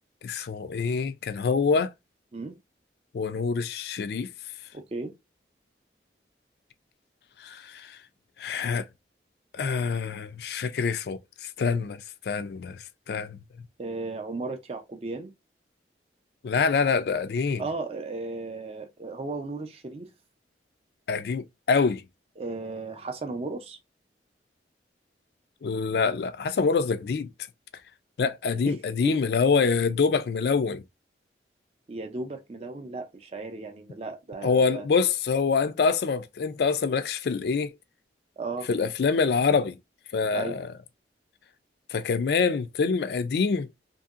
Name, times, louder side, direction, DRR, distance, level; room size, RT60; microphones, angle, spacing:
voice 1, 0.2-1.9 3.1-4.3 7.4-7.9 8.4-8.9 9.5-12.0 12.3-12.8 13.1-13.4 16.4-17.6 21.1-22.0 25.6-27.3 28.2-30.8 34.4-37.7 38.7-39.8 40.1-40.7 41.9-43.7, left 5 dB, 60° left, 0.3 m, -25 dB
voice 2, 4.7-5.1 13.8-15.3 17.6-20.1 22.4-23.8 28.5-28.8 29.0-29.2 31.9-34.8 38.4-38.7 40.3-40.6, right 3 dB, 35° right, 0.4 m, -35 dB
2.8 x 2.7 x 2.4 m
head